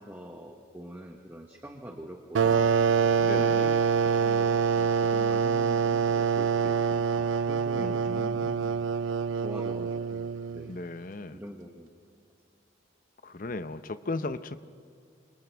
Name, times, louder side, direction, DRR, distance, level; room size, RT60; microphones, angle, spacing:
voice 1, 0.0-2.7 3.3-8.6 9.4-10.7 11.3-11.9, equal, 10° right, 2 dB, 1.1 m, -44 dB
sound 1, 2.3-10.7, right 6 dB, 85° right, 0.4 m, -25 dB
voice 2, 3.2-3.7 7.8-8.9 10.7-11.4 13.2-14.6, left 3 dB, 45° left, 11 dB, 0.7 m, -37 dB
27.5 x 27.5 x 3.5 m, 2.3 s
head